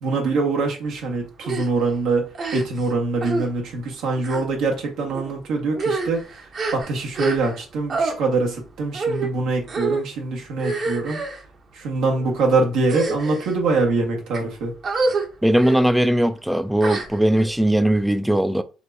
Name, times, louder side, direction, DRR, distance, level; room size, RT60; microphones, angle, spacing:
voice 1, 0.0-2.3 2.5-6.2 6.7-11.2 11.7-14.7, right 3 dB, 80° right, 1.5 m, -23 dB
sound 1, 1.4-1.7 2.3-2.9 3.2-3.5 4.2-4.4 5.1-5.3 5.7-7.6 7.9-8.1 8.9-9.3 9.7-10.0 10.6-11.4 12.1-12.3 12.8-13.5 14.1-14.4 14.8-15.2 15.6-15.8 16.8-17.5, right 3 dB, 50° right, 1.2 m, -26 dB
voice 2, 15.4-18.6, right 1 dB, 5° right, 0.5 m, -19 dB
4.8 x 3.3 x 2.8 m
supercardioid pair, 80°, 0 cm